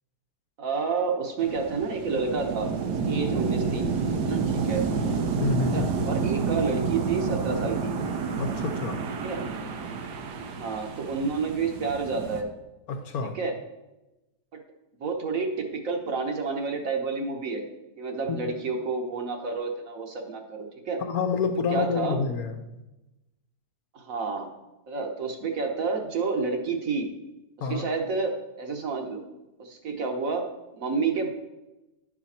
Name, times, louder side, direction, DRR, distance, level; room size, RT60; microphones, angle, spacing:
voice 1, 0.6-2.7 3.1-3.9 4.2-4.8 5.7-8.0 9.2-9.5 10.6-12.5 13.2-13.6 14.5-14.6 15.0-17.6 18.0-21.0 21.7-22.2 23.9-24.5 24.9-27.1 27.7-29.2 29.6-30.5 30.7-31.3, right 4 dB, 60° right, 4 dB, 1.3 m, -29 dB
sound 1, 1.4-12.4, right 5 dB, 85° right, 1.4 m, -29 dB
voice 2, 5.4-5.9 8.4-9.0 12.9-13.4 18.3-18.4 21.0-22.6 27.6-27.9, left 5 dB, 70° left, 6 dB, 1.1 m, -28 dB
10.5 x 5.0 x 4.2 m, 0.99 s
omnidirectional pair, 1.7 m